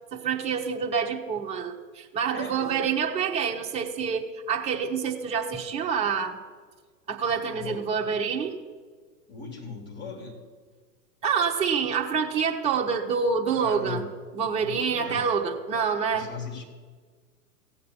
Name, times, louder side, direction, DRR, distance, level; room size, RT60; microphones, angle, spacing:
voice 1, 0.1-6.4 7.1-8.5 11.2-14.0 14.3-16.3, right 6 dB, 15° right, 1 dB, 0.9 m, -27 dB
voice 2, 2.3-2.8 7.5-7.9 9.3-10.4 13.5-14.1 14.6-15.3 16.1-16.6, left 5 dB, 20° left, 4 dB, 2.5 m, -38 dB
16.0 x 7.9 x 6.9 m, 1.5 s
hypercardioid pair, 115°, 48 cm